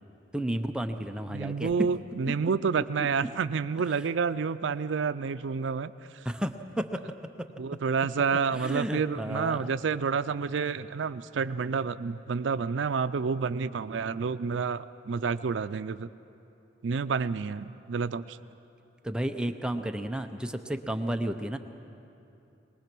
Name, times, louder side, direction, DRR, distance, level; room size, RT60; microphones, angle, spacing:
voice 1, 0.3-1.7 3.0-3.3 3.9-4.1 6.2-7.0 7.4-7.5 8.5-9.7 19.0-21.6, right 1 dB, 5° right, 6 dB, 0.6 m, -32 dB
voice 2, 1.3-5.9 7.6-16.1 16.8-18.4, right 5 dB, 85° right, 12 dB, 0.4 m, -29 dB
22.0 x 20.0 x 6.0 m, 2.8 s
head